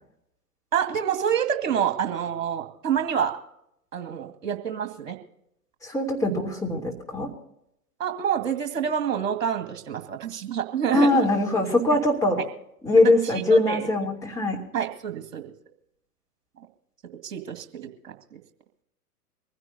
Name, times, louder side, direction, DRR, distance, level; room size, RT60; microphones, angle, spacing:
voice 1, 0.7-3.3 3.9-5.2 6.3-6.4 8.0-11.3 13.5-13.9 14.7-15.5 17.2-18.4, right 8 dB, 55° right, 6 dB, 2.2 m, -27 dB
voice 2, 5.8-7.3 10.9-12.4 12.8-14.6, left 2 dB, 5° left, -2 dB, 3.0 m, -22 dB
24.0 x 16.0 x 2.7 m, 0.78 s
figure-of-eight pair, 110°, 47 cm